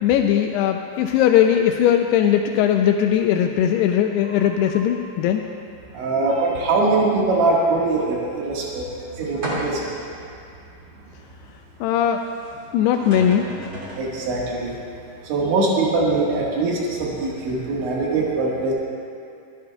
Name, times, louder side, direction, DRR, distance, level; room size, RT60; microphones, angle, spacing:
voice 1, 0.0-5.5 11.8-12.2 12.7-13.5, left 10 dB, 85° left, 4 dB, 2.3 m, -19 dB
voice 2, 5.9-10.0 14.0-14.7 15.2-18.7, right 3 dB, 85° right, -4 dB, 4.0 m, -22 dB
sound 1, 9.4-10.0 10.7-10.8 12.6-12.7 12.9-14.1, right 1 dB, 35° right, 1.6 m, -31 dB
21.5 x 13.0 x 2.3 m, 2.5 s
omnidirectional pair, 5.2 m